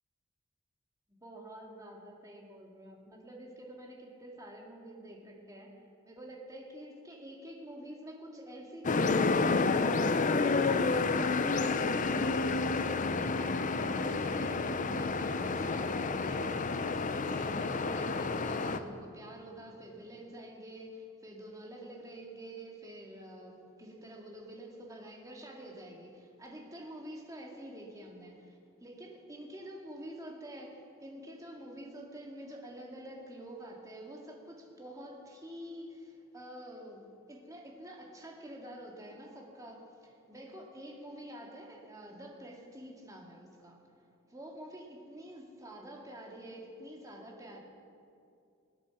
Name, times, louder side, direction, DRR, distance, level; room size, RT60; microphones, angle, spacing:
voice 1, 1.1-43.8 44.3-47.6, right 1 dB, 15° right, -1 dB, 2.1 m, -47 dB
sound 1, 8.8-18.8, left 3 dB, 40° left, 0.6 m, -30 dB
20.0 x 8.7 x 7.2 m, 2.5 s
head